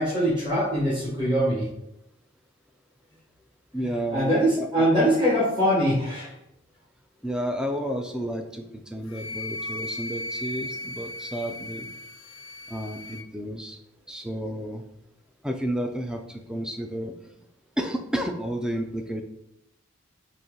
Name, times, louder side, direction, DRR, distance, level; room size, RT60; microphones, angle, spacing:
voice 1, 0.0-1.7 4.1-6.3, equal, 20° right, -9 dB, 1.3 m, -22 dB
voice 2, 3.7-4.9 7.2-11.9 12.7-13.8 14.1-14.8 15.4-17.1 17.8-19.2, equal, 5° right, 4 dB, 0.3 m, -31 dB
Wind instrument woodwind instrument, 9.1-13.3, left 2 dB, 70° left, 0.4 m, -36 dB
4.2 x 3.0 x 3.7 m, 0.82 s
head